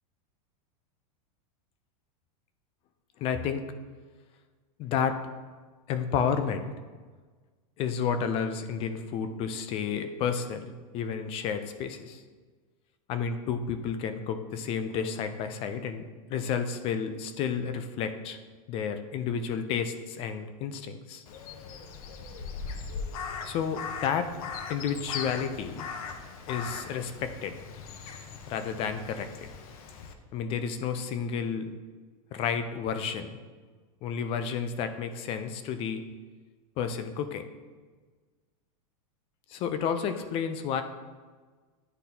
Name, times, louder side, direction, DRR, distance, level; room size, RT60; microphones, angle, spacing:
voice 1, 3.2-3.6 4.8-5.2 5.9-6.7 7.8-12.2 13.1-18.4 18.7-21.2 23.4-24.3 24.7-25.9 26.5-27.5 28.5-29.5 30.3-31.7 32.3-33.4 34.0-36.0 36.8-37.5 39.5-40.8, left 7 dB, 30° left, 9 dB, 0.4 m, -31 dB
Crow, 21.3-30.1, left 5 dB, 70° left, 0.7 m, -39 dB
10.0 x 3.9 x 2.8 m, 1.4 s
supercardioid pair, 150°, 19 cm